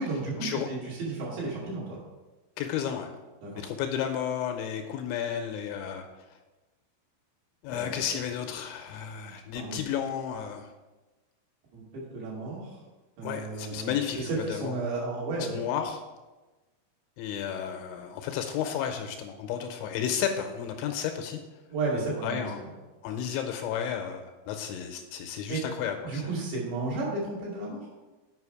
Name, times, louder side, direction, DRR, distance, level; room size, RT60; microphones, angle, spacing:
voice 1, 0.0-2.0 3.4-3.6 7.7-8.2 9.6-9.7 11.7-12.8 13.2-15.6 21.7-22.7 25.5-25.6 26.0-27.9, right 3 dB, 65° right, -5 dB, 4.5 m, -33 dB
voice 2, 2.6-3.1 3.6-6.1 7.6-10.7 13.2-14.7 15.5-16.0 17.2-21.4 22.2-22.6 23.0-26.3, left 8 dB, 85° left, 5 dB, 2.8 m, -32 dB
8.2 x 5.6 x 4.8 m, 1.2 s
omnidirectional pair, 5.5 m